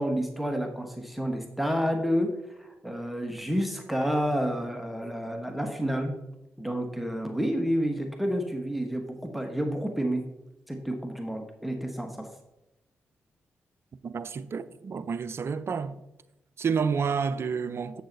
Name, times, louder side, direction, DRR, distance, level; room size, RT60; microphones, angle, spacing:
voice 1, 0.0-6.2 6.6-10.2 10.7-12.3, equal, ahead, 1.3 m, -29 dB
voice 2, 14.0-16.0 16.6-18.0, right 6 dB, 55° right, 0.6 m, -29 dB
8.7 x 6.3 x 4.0 m
hypercardioid pair, 45°, 5 cm